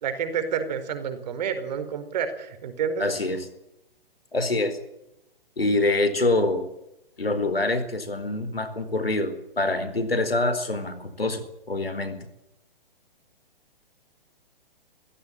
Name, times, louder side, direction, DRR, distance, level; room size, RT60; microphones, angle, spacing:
voice 1, 0.0-3.0, right 7 dB, 45° right, 9 dB, 4.5 m, -29 dB
voice 2, 3.0-3.5 4.3-4.8 5.6-6.7 7.2-12.2, left 2 dB, 85° left, 10 dB, 4.5 m, -25 dB
27.0 x 16.0 x 9.0 m, 0.87 s
figure-of-eight pair, 125°, 29 cm